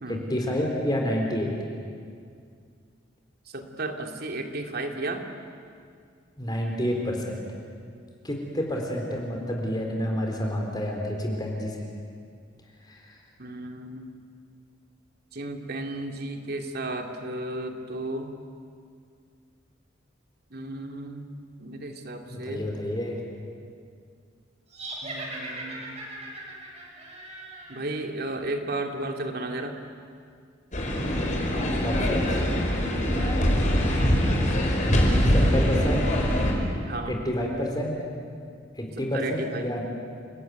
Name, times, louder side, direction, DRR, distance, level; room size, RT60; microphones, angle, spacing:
voice 1, 0.1-1.5 6.4-7.4 8.2-11.8 12.9-13.0 22.3-23.2 31.8-32.4 35.2-36.0 37.1-38.0 38.8-39.8, equal, 20° left, 1 dB, 4.0 m, -29 dB
voice 2, 3.5-5.2 13.4-14.1 15.3-18.3 20.5-21.3 21.6-22.6 25.0-25.9 27.7-29.8 33.1-33.5 36.9-37.2 39.0-39.7, right 2 dB, 55° right, 3 dB, 2.9 m, -34 dB
sound 1, 24.7-28.1, right 1 dB, 35° right, 6.2 m, -39 dB
sound 2, 30.7-36.5, equal, 40° left, 5.2 m, -23 dB
30.0 x 20.0 x 9.5 m, 2.2 s
head